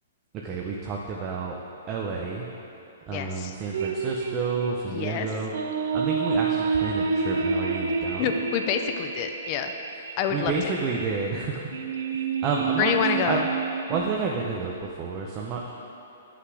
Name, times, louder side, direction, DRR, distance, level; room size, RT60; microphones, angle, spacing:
voice 1, 0.4-1.6 1.9-2.5 3.1-5.5 5.9-8.4 10.0-11.6 12.4-13.4 13.9-15.7, right 5 dB, 25° right, -2 dB, 0.6 m, -30 dB
voice 2, 3.1-3.5 4.9-5.3 8.2-9.7 10.2-10.7 12.8-13.4, left 8 dB, 35° left, 6 dB, 0.5 m, -27 dB
sound 1, 3.7-14.2, right 5 dB, 75° right, 0.7 m, -29 dB
8.2 x 5.8 x 4.8 m, 2.8 s
hypercardioid pair, 155°, 0 cm